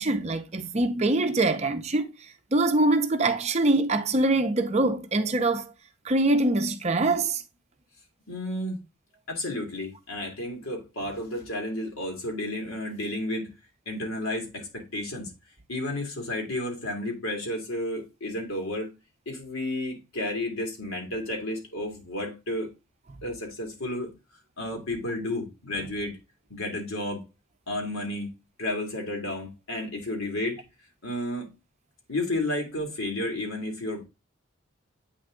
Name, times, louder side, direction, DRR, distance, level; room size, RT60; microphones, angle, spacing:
voice 1, 0.0-2.1 2.5-5.7 6.0-7.4, right 2 dB, 30° right, 0.6 m, -24 dB
voice 2, 8.3-8.8 9.3-13.5 13.9-15.3 15.7-19.0 19.3-22.7 23.2-24.1 24.6-26.2 26.5-27.2 27.7-28.3 28.6-30.6 31.0-31.5 32.1-34.1, left 1 dB, 80° left, 2.1 m, -32 dB
8.3 x 3.5 x 3.6 m
head